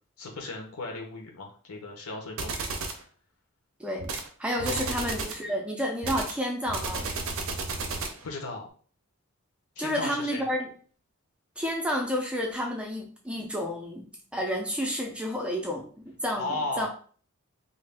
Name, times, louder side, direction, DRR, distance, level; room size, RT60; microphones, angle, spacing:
voice 1, 0.2-3.0 4.6-5.1 8.2-8.7 9.8-10.5 16.3-16.9, left 2 dB, 80° left, 1 dB, 0.9 m, -36 dB
sound 1, 2.4-3.0 4.0-4.3 4.6-5.4 6.0-8.2, right 3 dB, 65° right, 0.5 m, -33 dB
voice 2, 3.8-4.1 4.4-7.1 9.8-10.7 11.6-15.9 16.2-16.9, equal, 5° right, 0 dB, 0.4 m, -30 dB
2.6 x 2.3 x 3.4 m, 0.44 s
head